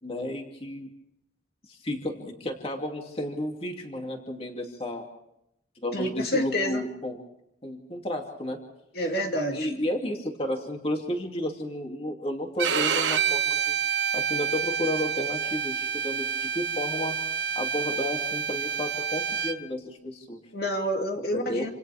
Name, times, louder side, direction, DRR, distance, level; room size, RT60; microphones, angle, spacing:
voice 1, 0.0-0.9 1.7-5.0 5.8-7.2 7.6-8.6 9.5-13.8 14.1-17.2 17.5-20.4 21.3-21.7, left 1 dB, 30° left, 2 dB, 2.7 m, -32 dB
voice 2, 5.9-6.8 8.9-9.7 20.5-21.7, equal, 55° left, 1 dB, 2.7 m, -28 dB
Bowed string instrument, 12.6-19.6, right 7 dB, 75° right, 1.1 m, -28 dB
28.5 x 27.5 x 3.5 m, 0.80 s
head